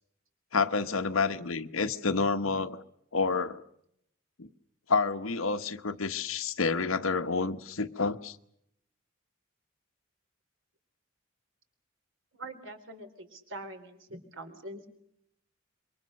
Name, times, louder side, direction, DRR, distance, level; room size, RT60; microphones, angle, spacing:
voice 1, 0.5-2.8 3.1-3.6 4.4-4.5 4.9-8.4, left 4 dB, 90° left, 8 dB, 1.2 m, -29 dB
voice 2, 12.3-14.9, right 1 dB, 70° right, 7 dB, 3.8 m, -44 dB
27.0 x 23.5 x 6.5 m, 0.75 s
head